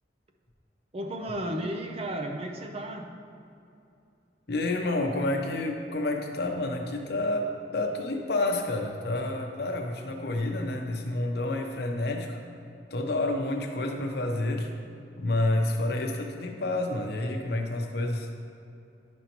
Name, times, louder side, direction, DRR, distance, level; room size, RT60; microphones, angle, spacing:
voice 1, 0.9-3.1, right 1 dB, 35° right, 4 dB, 0.6 m, -33 dB
voice 2, 4.5-12.4 12.9-14.7 15.2-18.3, left 2 dB, 65° left, 3 dB, 0.8 m, -29 dB
10.5 x 5.2 x 3.0 m, 2.6 s
head